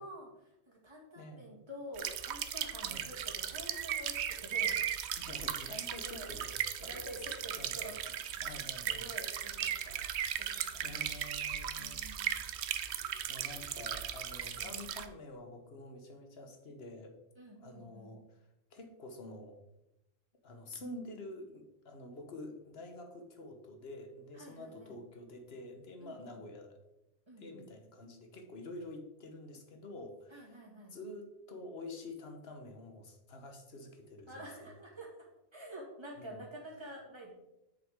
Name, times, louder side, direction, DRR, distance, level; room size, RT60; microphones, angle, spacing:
voice 1, 0.0-4.8 5.1-5.5 6.0-6.3 6.6-8.2 8.9-10.0 10.4-11.1 11.8-12.4 14.6-14.8 17.4-18.1 24.3-25.0 26.0-26.4 27.3-27.7 30.3-30.9 34.3-35.1 35.5-37.3, equal, 25° right, -3 dB, 2.2 m, -49 dB
voice 2, 1.1-1.6 2.7-3.0 5.2-7.1 7.6-7.8 8.4-9.0 10.8-12.4 13.3-17.1 17.6-18.4 18.7-19.6 20.4-26.8 27.4-30.5 30.9-34.5 36.2-36.4, left 2 dB, 65° left, 4 dB, 1.4 m, -48 dB
sound 1, 2.0-15.1, right 9 dB, 75° right, 0.9 m, -37 dB
8.1 x 6.7 x 3.7 m, 0.91 s
omnidirectional pair, 1.2 m